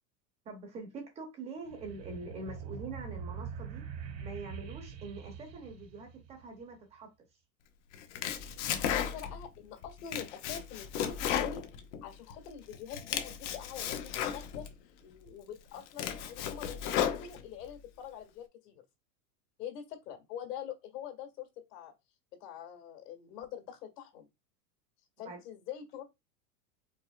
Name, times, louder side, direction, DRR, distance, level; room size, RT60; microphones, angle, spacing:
voice 1, 0.4-3.8 4.2-7.1 25.2-25.4, right 3 dB, 15° right, 0.7 m, -44 dB
sound 1, 1.7-6.6, right 6 dB, 85° right, 2.4 m, -43 dB
Domestic sounds home sounds, 7.9-9.5 9.8-12.4 12.7-14.7 15.3-15.4 15.8-17.7, left 9 dB, 45° left, 0.8 m, -34 dB
voice 2, 8.7-11.6 12.0-14.7 15.0-18.8 19.6-21.9 22.4-24.3 25.2-26.0, left 9 dB, 75° left, 2.2 m, -45 dB
5.4 x 4.0 x 2.3 m
supercardioid pair, 170°, 48 cm